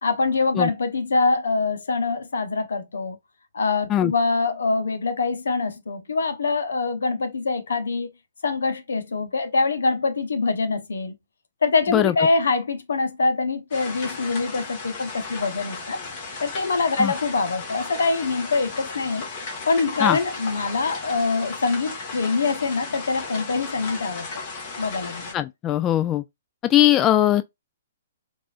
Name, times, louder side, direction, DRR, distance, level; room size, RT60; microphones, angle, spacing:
voice 1, 0.0-3.2 3.5-8.1 8.4-11.1 11.6-16.0 16.4-19.2 19.7-24.3 24.8-25.4, left 3 dB, 75° left, 0.8 m, -24 dB
sound 1, 13.7-25.3, left 4 dB, 45° left, 1.7 m, -35 dB
voice 2, 25.3-26.2 26.6-27.4, left 12 dB, 25° left, 0.3 m, -19 dB
4.7 x 2.6 x 2.4 m
hypercardioid pair, 130°, 0 cm